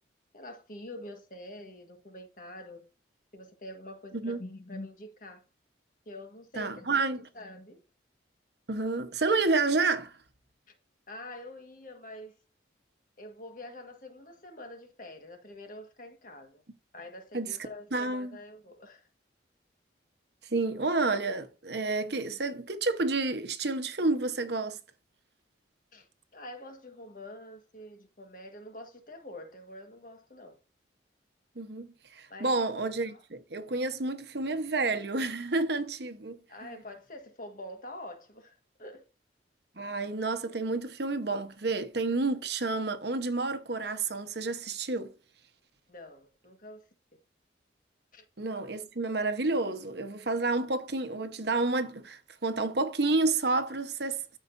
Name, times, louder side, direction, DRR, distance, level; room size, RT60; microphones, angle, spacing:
voice 1, 0.3-2.8 3.3-5.4 6.0-6.9 7.3-7.8 10.7-10.8 11.1-12.4 13.2-16.6 16.9-19.1 25.9-30.6 32.3-32.5 33.0-33.2 36.5-39.1 45.9-46.9 48.1-48.3, left 1 dB, 45° left, 1.6 m, -46 dB
voice 2, 6.6-7.2 8.7-10.2 17.3-17.6 17.9-18.4 20.5-24.8 31.6-31.9 32.1-36.4 39.8-45.1 48.4-54.2, right 3 dB, 60° right, 1.1 m, -30 dB
13.5 x 5.1 x 2.6 m
head